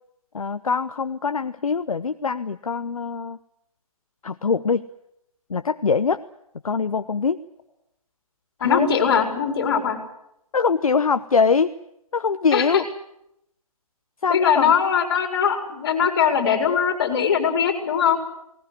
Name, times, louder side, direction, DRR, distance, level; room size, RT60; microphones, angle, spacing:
voice 1, 0.3-3.4 4.2-4.8 5.5-6.2 6.6-7.4 8.6-9.0 10.5-11.7 12.1-12.8 14.2-14.7, left 5 dB, 65° left, 11 dB, 0.9 m, -23 dB
voice 2, 8.6-10.0 12.5-12.8 14.3-18.2, left 7 dB, 40° left, 5 dB, 4.7 m, -21 dB
19.5 x 19.0 x 9.9 m, 0.80 s
figure-of-eight pair, 145°, 19 cm